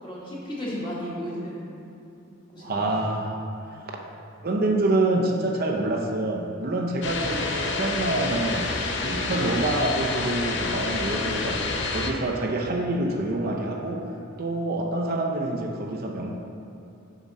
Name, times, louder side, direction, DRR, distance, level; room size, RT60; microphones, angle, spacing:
voice 1, 0.0-1.7 2.5-3.2, equal, 25° left, -7 dB, 1.6 m, -34 dB
voice 2, 2.6-3.4 3.7-4.0 4.4-8.7 9.0-14.1 14.4-16.3, right 2 dB, 50° right, 0 dB, 0.6 m, -27 dB
sound 1, 7.0-12.1, left 3 dB, 60° left, 0.6 m, -28 dB
7.4 x 5.0 x 4.2 m, 2.8 s
head